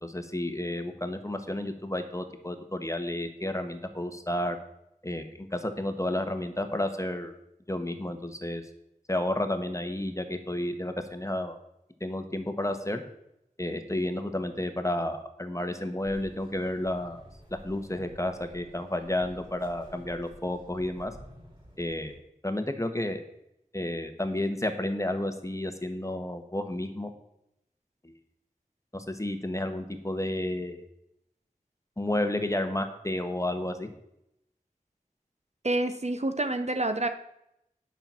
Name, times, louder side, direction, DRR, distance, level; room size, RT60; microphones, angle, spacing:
voice 1, 0.0-4.6 5.0-7.3 7.7-8.6 9.1-11.6 12.0-13.0 13.6-17.2 17.5-21.1 21.8-23.2 23.7-27.1 28.0-28.1 28.9-30.8 32.0-33.9, left 1 dB, 20° left, 7 dB, 1.2 m, -31 dB
sound 1, 16.0-22.2, equal, 35° right, 4.1 m, -51 dB
voice 2, 35.6-37.1, right 2 dB, 50° right, 8 dB, 0.8 m, -28 dB
10.0 x 5.7 x 7.4 m, 0.81 s
wide cardioid pair, 50°, 15 cm